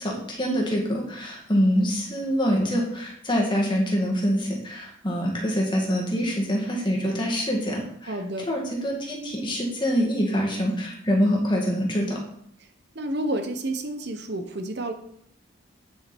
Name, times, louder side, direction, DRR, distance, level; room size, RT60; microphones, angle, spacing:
voice 1, 0.0-8.1 8.5-12.2, equal, 25° left, -1 dB, 2.2 m, -25 dB
voice 2, 8.0-8.5 12.6-12.7 12.9-14.9, right 1 dB, 55° right, 6 dB, 0.9 m, -30 dB
9.1 x 7.2 x 4.5 m, 0.68 s
head